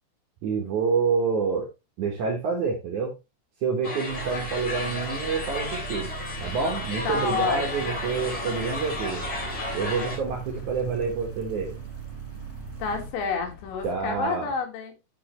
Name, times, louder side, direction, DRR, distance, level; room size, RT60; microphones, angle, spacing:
voice 1, 0.4-1.7 2.0-3.1 3.6-6.1 6.4-9.2 9.7-11.8 13.8-14.5, right 5 dB, 75° right, 0 dB, 1.7 m, -27 dB
sound 1, 3.8-10.2, left 2 dB, 30° left, 3.3 m, -33 dB
sound 2, 4.1-13.1, right 8 dB, 50° right, 2.1 m, -39 dB
sound 3, 5.2-14.2, left 5 dB, 75° left, 4.9 m, -45 dB
voice 2, 7.1-8.0 12.8-14.9, left 5 dB, 90° left, 3 dB, 4.5 m, -29 dB
11.0 x 5.8 x 3.1 m, 0.25 s
omnidirectional pair, 5.6 m